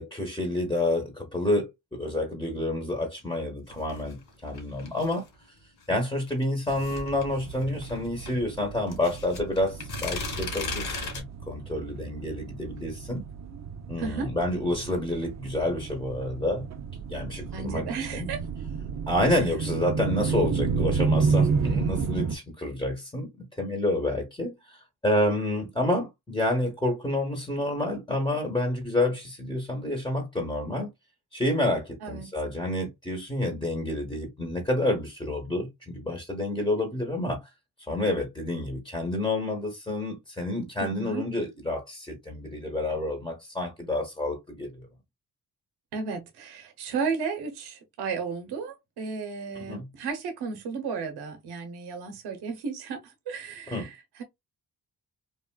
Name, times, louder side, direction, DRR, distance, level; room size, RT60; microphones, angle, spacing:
voice 1, 0.0-5.2 5.9-13.2 13.9-16.7 17.1-17.8 18.1-18.3 19.1-30.9 31.3-37.4 37.8-44.9 49.7-49.9 53.7-53.9, left 1 dB, 10° left, 1.1 m, -29 dB
sound 1, 3.7-5.3 6.3-8.3 8.9-11.2, left 3 dB, 75° left, 2.1 m, -36 dB
sound 2, 6.7-22.3, right 5 dB, 45° right, 0.6 m, -31 dB
voice 2, 14.0-14.3 17.5-18.4 32.0-32.3 40.8-41.2 45.9-54.2, right 5 dB, 85° right, 0.8 m, -34 dB
3.4 x 2.4 x 2.2 m
cardioid pair, 90°, 38 cm